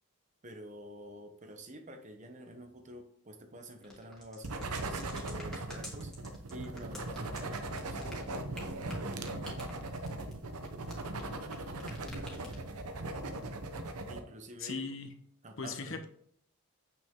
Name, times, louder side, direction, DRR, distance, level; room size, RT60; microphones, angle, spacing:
voice 1, 0.4-6.1 6.5-8.3 14.1-14.8 15.4-16.0, right 1 dB, 35° right, 6 dB, 1.0 m, -48 dB
sound 1, 3.8-11.5 11.8-12.8, left 1 dB, ahead, 2.1 m, -48 dB
sound 2, 4.4-14.2, right 2 dB, 85° right, 0.9 m, -39 dB
voice 2, 14.6-15.1 15.6-16.1, left 4 dB, 60° left, 6 dB, 1.1 m, -38 dB
8.3 x 6.0 x 3.7 m, 0.64 s
head